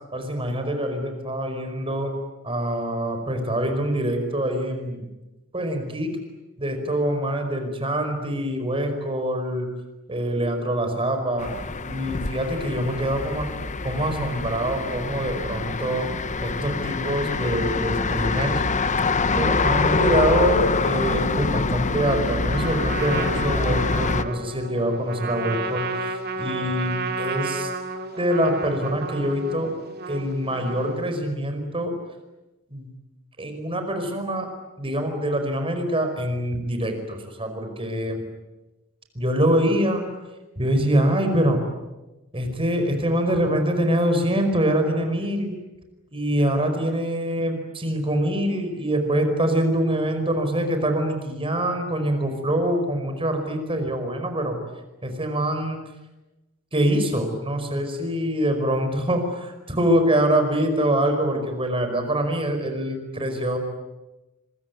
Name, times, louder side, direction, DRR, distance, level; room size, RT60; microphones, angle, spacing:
voice 1, 0.1-2.1 2.4-5.0 5.5-6.1 6.6-9.7 10.1-11.5 11.9-13.5 13.8-16.1 16.4-18.6 19.3-27.7 28.2-29.7 30.1-31.9 32.7-32.9 33.4-34.5 34.8-38.2 39.1-40.0 40.6-41.6 42.3-45.5 46.1-54.6 55.0-55.8 56.7-63.6, right 1 dB, 25° right, 6 dB, 5.1 m, -24 dB
sound 1, 11.4-24.2, left 3 dB, 35° left, 1.0 m, -25 dB
Trumpet, 22.5-31.2, right 3 dB, 50° right, 2.2 m, -32 dB
26.0 x 22.5 x 9.6 m, 1.1 s
head